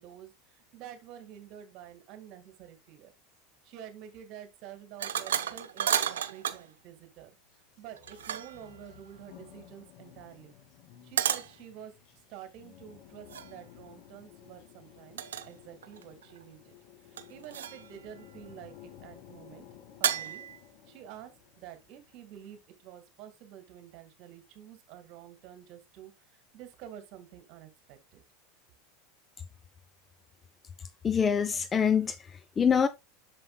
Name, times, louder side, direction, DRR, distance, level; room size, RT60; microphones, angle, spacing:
voice 1, 0.0-3.1 3.6-7.4 7.8-10.5 11.0-16.7 17.0-19.7 20.0-20.4 20.9-28.2, right 10 dB, 55° right, 1.8 m, -49 dB
sound 1, 5.0-6.6 7.2-22.6, left 10 dB, 55° left, 2.3 m, -55 dB
sound 2, 5.0-6.7 7.9-8.7 11.2-11.5 13.3-13.5 15.2-15.5 15.8-16.4 17.2-17.9 20.0-20.6, right 9 dB, 80° right, 0.6 m, -32 dB
voice 2, 31.0-32.9, left 7 dB, 25° left, 0.6 m, -25 dB
7.8 x 6.4 x 2.3 m
hypercardioid pair, 85°, 0 cm